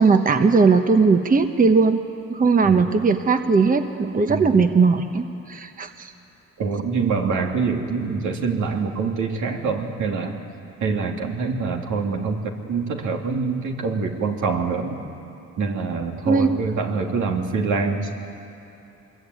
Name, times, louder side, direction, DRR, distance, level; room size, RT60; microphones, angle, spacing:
voice 1, 0.0-2.0 2.3-6.1 16.3-16.5, right 4 dB, 30° right, 7 dB, 1.1 m, -18 dB
voice 2, 4.3-4.6 6.6-10.4 10.8-15.0 15.6-18.1, right 4 dB, 75° right, 2 dB, 2.9 m, -25 dB
24.5 x 22.0 x 9.5 m, 2.7 s
cardioid pair, 90°, 30 cm